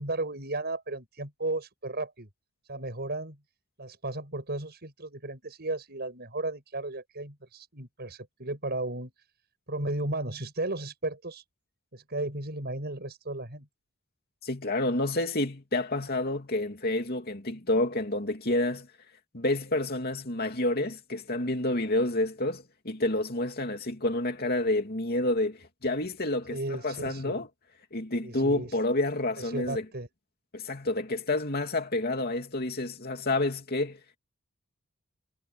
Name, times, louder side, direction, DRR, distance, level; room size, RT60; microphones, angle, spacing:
voice 1, 0.0-2.3 2.7-3.4 3.8-9.1 9.7-11.4 11.9-13.7 26.5-27.4 28.2-28.8 29.4-30.1, right 2 dB, 50° right, 6.7 m, -34 dB
voice 2, 14.4-18.9 19.3-27.5 27.9-29.8 30.5-34.2, left 2 dB, 45° left, 2.8 m, -29 dB
head